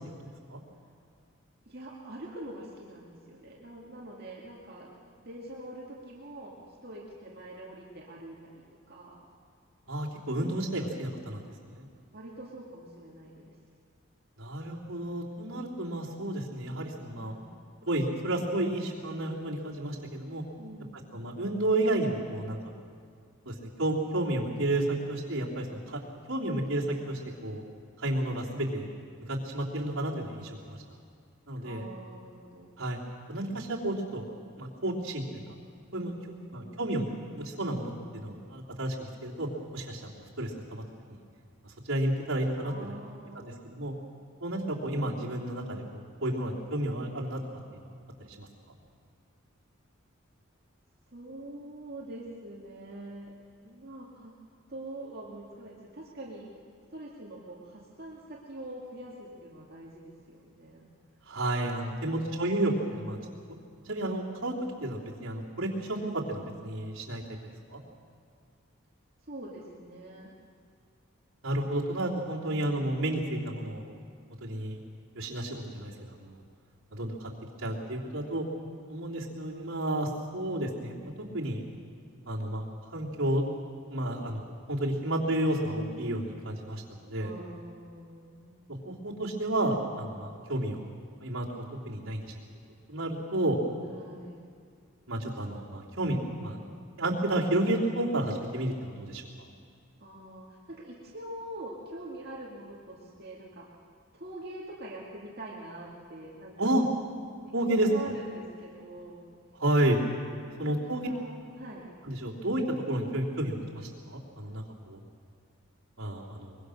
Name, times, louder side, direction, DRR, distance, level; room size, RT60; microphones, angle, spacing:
voice 1, 1.7-9.3 12.1-13.6 17.2-17.6 20.6-21.4 31.6-32.7 36.1-37.0 42.6-43.7 51.1-53.3 53.6-54.3 54.7-56.5 56.9-60.9 69.2-70.4 72.3-72.6 87.2-88.6 93.9-94.4 100.0-103.7 104.1-106.7 107.5-109.3 110.5-111.9, right 1 dB, 45° right, -4 dB, 2.3 m, -45 dB
voice 2, 9.9-11.4 11.7-11.9 14.4-17.3 17.8-20.4 21.1-22.6 23.4-26.0 26.3-27.6 28.0-28.9 29.3-30.8 31.5-31.8 32.8-33.0 33.3-34.3 34.6-35.2 35.9-36.2 36.5-40.0 40.4-40.8 41.8-42.7 43.3-43.9 44.4-47.4 48.3-48.5 61.3-63.2 63.8-64.5 64.8-67.2 67.7-67.8 71.4-73.8 74.4-74.8 75.1-76.4 76.9-77.3 77.6-78.4 78.9-81.6 82.3-82.6 82.9-83.4 83.9-84.4 84.7-87.3 88.8-90.8 91.2-92.3 92.9-93.6 95.1-96.6 97.0-99.3 106.6-106.8 107.5-107.9 109.6-110.0 110.6-111.1 112.0-115.0 116.0-116.6, right 1 dB, 70° right, -5 dB, 3.1 m, -31 dB
24.0 x 22.0 x 6.5 m, 2.2 s
head